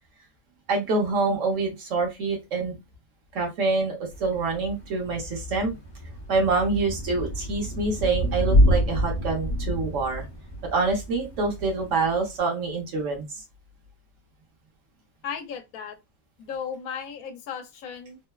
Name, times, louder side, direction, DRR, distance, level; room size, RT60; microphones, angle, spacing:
voice 1, 0.7-2.8 3.3-5.8 6.3-10.3 10.7-13.4, right 3 dB, 65° right, 1.2 m, -26 dB
Thunder / Rain, 4.1-12.4, equal, 35° left, 0.4 m, -27 dB
voice 2, 15.2-16.0 16.4-18.2, left 7 dB, 85° left, 1.0 m, -35 dB
3.2 x 2.1 x 2.2 m
omnidirectional pair, 1.4 m